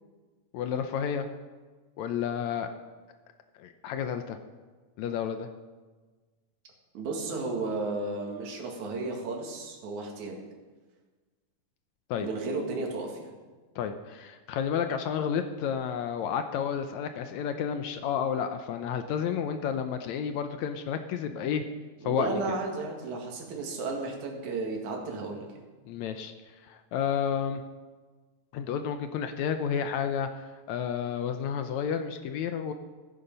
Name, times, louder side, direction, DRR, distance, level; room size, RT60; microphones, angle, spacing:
voice 1, 0.5-1.3 2.0-2.7 3.6-4.4 5.0-5.5 12.1-12.3 13.8-21.7 22.0-22.4 25.9-26.3 26.6-27.6 28.5-32.7, left 7 dB, 75° left, 8 dB, 1.8 m, -31 dB
voice 2, 6.9-10.5 12.2-13.3 22.0-25.5, right 3 dB, 65° right, 0 dB, 3.3 m, -33 dB
14.5 x 10.0 x 5.3 m, 1.3 s
omnidirectional pair, 3.8 m